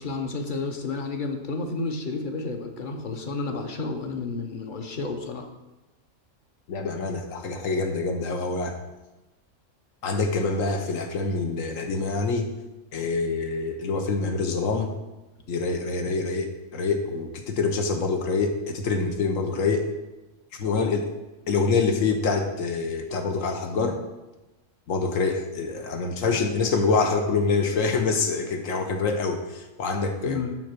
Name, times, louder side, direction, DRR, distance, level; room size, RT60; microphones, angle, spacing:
voice 1, 0.0-5.5 30.3-30.5, left 3 dB, 45° left, 4 dB, 0.8 m, -31 dB
voice 2, 6.7-8.7 10.0-12.5 12.9-15.0 15.5-19.9 20.6-21.1 21.5-24.0 24.9-30.4, left 4 dB, 85° left, 5 dB, 1.3 m, -26 dB
6.0 x 4.4 x 5.9 m, 1.0 s
omnidirectional pair, 1.3 m